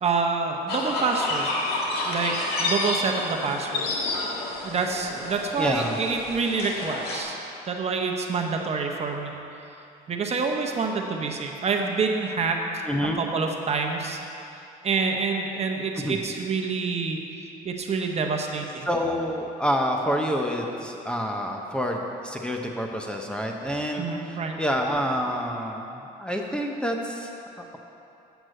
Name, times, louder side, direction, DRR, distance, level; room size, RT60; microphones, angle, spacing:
voice 1, 0.0-1.5 2.0-3.8 4.6-7.4 7.7-9.3 10.1-12.8 13.2-14.2 14.8-18.9 24.0-24.6, right 4 dB, 40° right, 2 dB, 1.0 m, -27 dB
sound 1, 0.7-7.2, left 2 dB, 70° left, 1.8 m, -30 dB
voice 2, 5.6-5.9 12.9-13.2 16.0-16.2 18.9-27.3, equal, 5° left, 1 dB, 0.8 m, -28 dB
8.1 x 6.0 x 7.7 m, 2.8 s
cardioid pair, 110°, 17 cm